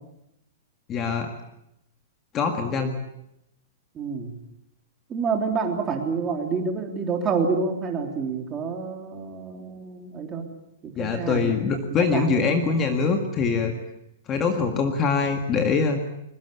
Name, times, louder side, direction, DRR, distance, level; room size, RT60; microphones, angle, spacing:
voice 1, 0.9-1.3 2.3-2.9 11.0-13.7 14.3-16.0, left 5 dB, 20° left, 5 dB, 1.8 m, -23 dB
voice 2, 4.0-4.3 5.1-10.5 10.8-11.5 11.9-12.8, right 5 dB, 15° right, 3 dB, 3.4 m, -28 dB
22.5 x 22.0 x 8.3 m, 0.83 s
hypercardioid pair, 165°, 0 cm